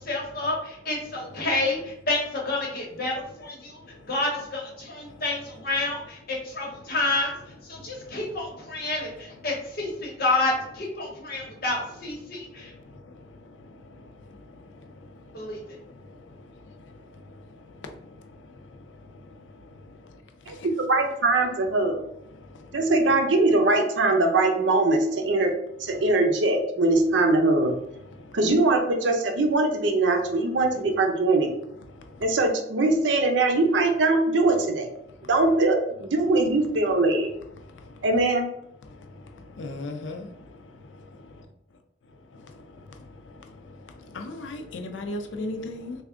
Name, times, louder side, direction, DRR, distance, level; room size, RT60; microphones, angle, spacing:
voice 1, 0.0-3.8 4.1-7.3 7.6-12.7 15.3-15.6, left 2 dB, 55° left, 1.0 m, -29 dB
voice 2, 20.6-22.0 22.7-27.7 28.3-31.5 32.2-34.9 35.3-37.3 38.0-38.5, right 2 dB, 80° right, 0.6 m, -22 dB
voice 3, 39.6-40.3 44.2-46.0, left 2 dB, 85° left, 0.5 m, -34 dB
3.4 x 2.3 x 3.6 m
head